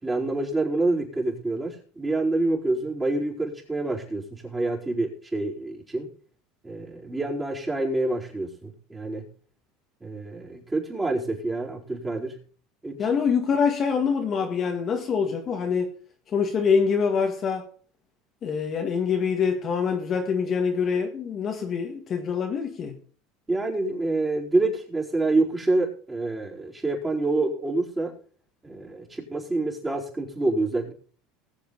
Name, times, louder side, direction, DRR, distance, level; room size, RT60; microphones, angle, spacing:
voice 1, 0.0-6.1 6.6-9.3 10.0-12.4 12.8-13.1 23.5-28.1 28.6-30.9, right 2 dB, 15° right, 4.4 m, -27 dB
voice 2, 13.0-15.9 16.3-17.7 18.4-23.0, left 6 dB, 35° left, 2.0 m, -25 dB
20.0 x 7.6 x 4.1 m
supercardioid pair, 115°, 0 cm